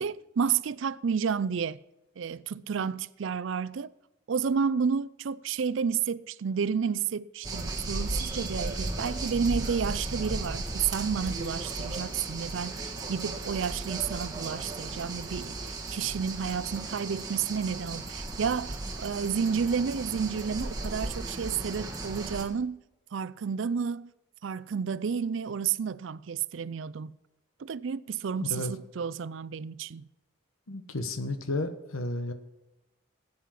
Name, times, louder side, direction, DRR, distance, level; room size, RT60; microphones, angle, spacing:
voice 1, 0.0-1.8 2.2-3.9 4.3-22.8 23.1-24.1 24.4-27.1 27.6-30.1, right 6 dB, 65° right, 0.4 m, -31 dB
sound 1, 7.4-22.4, right 2 dB, 20° right, 1.4 m, -35 dB
voice 2, 28.4-28.7 30.7-32.3, left 2 dB, 80° left, 1.2 m, -32 dB
15.0 x 8.7 x 5.8 m
head